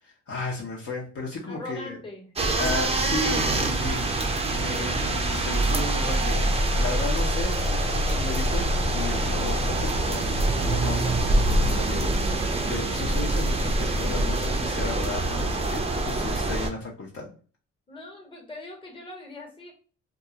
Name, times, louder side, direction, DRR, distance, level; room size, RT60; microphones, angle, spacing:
voice 1, 0.0-2.0 2.6-17.3, left 3 dB, 50° left, -2 dB, 0.8 m, -35 dB
voice 2, 1.5-2.3 4.6-4.8 17.9-19.7, left 2 dB, 15° left, 1 dB, 1.0 m, -41 dB
sound 1, 2.4-16.7, right 1 dB, 20° right, 0.5 m, -25 dB
2.4 x 2.2 x 2.8 m, 0.38 s
cardioid pair, 90°, 30 cm